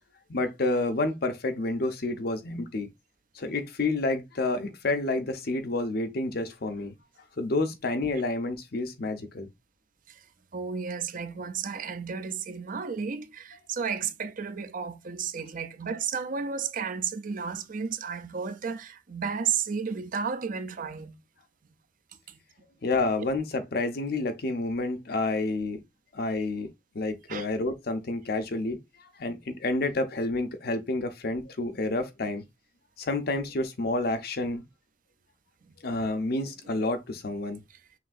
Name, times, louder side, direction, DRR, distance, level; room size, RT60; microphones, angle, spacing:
voice 1, 0.3-2.9 3.3-6.9 7.4-9.5 22.8-25.8 26.1-32.4 33.0-34.7 35.8-37.6, left 2 dB, 60° left, 0.8 m, -29 dB
voice 2, 10.5-21.2 22.3-22.4 27.3-27.5, right 6 dB, 50° right, 0.5 m, -33 dB
5.8 x 2.7 x 2.6 m
head